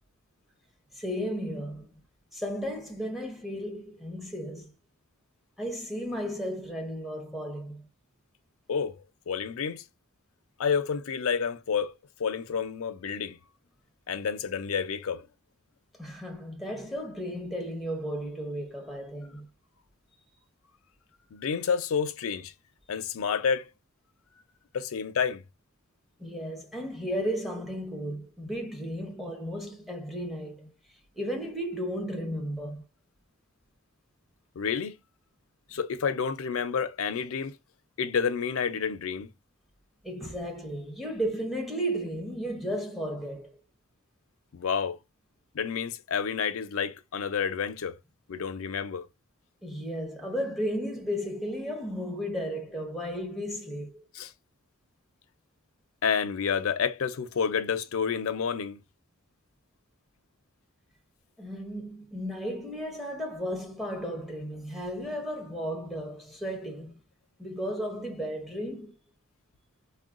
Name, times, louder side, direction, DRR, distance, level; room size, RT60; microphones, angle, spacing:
voice 1, 0.9-1.9 2.3-4.7 5.6-7.9 16.0-19.5 26.2-30.7 31.2-32.8 40.0-43.6 49.6-54.0 61.4-67.0 67.4-69.0, equal, ahead, 0.8 m, -34 dB
voice 2, 8.7-9.8 10.6-11.9 12.2-13.4 14.1-15.3 21.3-22.5 22.9-23.7 24.7-25.4 34.6-35.0 35.7-37.6 38.0-39.3 44.5-45.0 45.5-48.0 48.3-49.1 54.1-54.3 56.0-58.8, left 6 dB, 75° left, 0.5 m, -29 dB
3.7 x 2.1 x 2.4 m
head